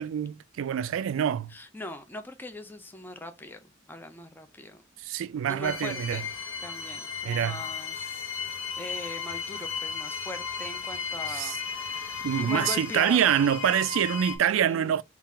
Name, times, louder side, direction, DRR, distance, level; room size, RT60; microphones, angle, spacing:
voice 1, 0.0-1.5 5.0-6.2 7.2-7.6 11.3-11.6 12.2-15.0, right 9 dB, 80° right, 0.3 m, -26 dB
voice 2, 1.5-4.8 5.5-6.3 6.6-8.3 8.8-13.3 14.4-15.0, left 2 dB, 10° left, 0.4 m, -41 dB
sound 1, 5.6-14.4, left 6 dB, 75° left, 0.9 m, -35 dB
3.7 x 2.4 x 4.1 m
head